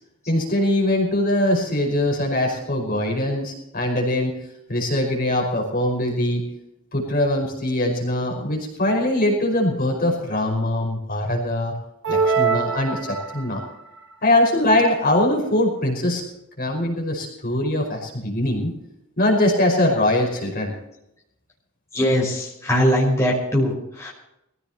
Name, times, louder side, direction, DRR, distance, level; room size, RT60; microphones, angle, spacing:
voice 1, 0.3-6.4 6.9-11.7 12.1-13.6 14.2-16.2 16.6-18.7 19.2-20.7, left 1 dB, 45° left, 0 dB, 5.2 m, -22 dB
sound 1, 12.0-13.7, right 5 dB, 60° right, 1.4 m, -23 dB
voice 2, 21.9-24.1, equal, 15° left, -4 dB, 5.4 m, -21 dB
24.0 x 16.0 x 2.9 m, 0.84 s
head